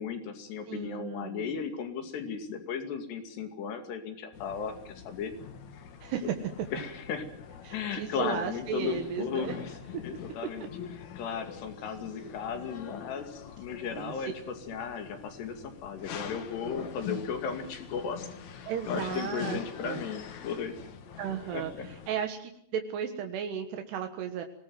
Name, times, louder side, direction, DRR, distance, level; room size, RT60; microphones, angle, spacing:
voice 1, 0.0-5.3 6.7-7.3 7.7-9.7 10.0-10.7 11.2-14.3 14.7-18.3 18.5-20.8 21.5-21.6, left 6 dB, 90° left, 6 dB, 4.6 m, -36 dB
voice 2, 0.7-1.5 6.0-6.4 7.6-9.6 14.0-14.3 18.7-20.0 21.2-24.4, right 8 dB, 85° right, 5 dB, 3.6 m, -35 dB
sound 1, 4.3-22.1, left 8 dB, 55° left, 2.5 m, -44 dB
24.0 x 18.5 x 7.8 m, 0.68 s
omnidirectional pair, 4.7 m